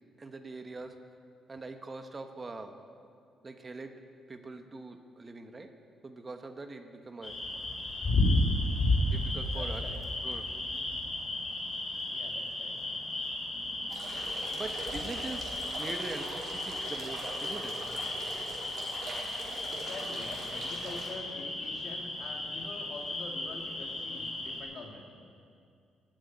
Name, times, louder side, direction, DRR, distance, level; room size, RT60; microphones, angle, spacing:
voice 1, 0.2-1.0 1.5-2.7 3.4-4.0 4.3-5.7 6.0-7.4 9.1-9.8 10.2-10.5 14.5-15.5 15.8-17.8, right 3 dB, 30° right, 7 dB, 1.1 m, -42 dB
sound 1, 7.2-24.6, left 2 dB, 35° left, 5.1 m, -34 dB
voice 2, 9.5-10.0 12.1-12.8 19.7-25.0, left 3 dB, 60° left, 1 dB, 2.4 m, -45 dB
sound 2, 13.9-21.1, right 2 dB, 65° right, 4.1 m, -42 dB
14.5 x 8.5 x 9.7 m, 2.3 s
cardioid pair, 90°, 0 cm